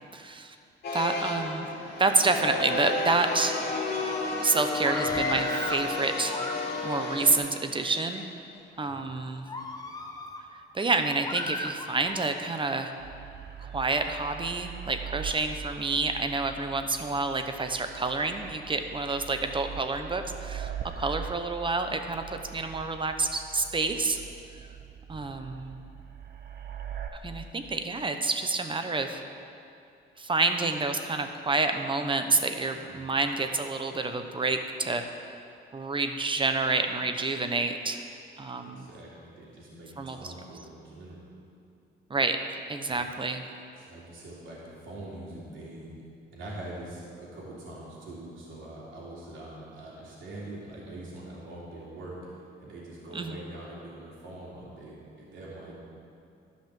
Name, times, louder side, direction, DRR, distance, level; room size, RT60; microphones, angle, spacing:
voice 1, 0.1-0.6 0.9-1.7 2.0-3.7 4.4-6.4 6.8-8.2 8.8-9.5 10.7-12.9 13.6-24.2 25.1-25.8 27.2-29.2 30.2-35.4 35.7-38.0 38.4-38.9 40.0-40.3 42.1-42.4 42.7-43.4 53.1-53.4, right 3 dB, 25° right, 7 dB, 0.9 m, -28 dB
sound 1, 0.8-7.4, left 2 dB, 55° left, 2.2 m, -31 dB
Screaming, 4.8-5.9 6.2-7.0 7.7-8.2 8.8-8.9 9.5-10.4 11.2-12.3, left 2 dB, 20° left, 1.0 m, -36 dB
sound 2, 13.0-27.1, right 8 dB, 55° right, 1.0 m, -42 dB
voice 2, 32.9-33.4 38.6-41.2 42.9-43.0 43.7-45.9 46.3-55.8, right 1 dB, 75° right, -6 dB, 3.2 m, -44 dB
12.0 x 5.6 x 7.5 m, 2.5 s
cardioid pair, 90°, 20 cm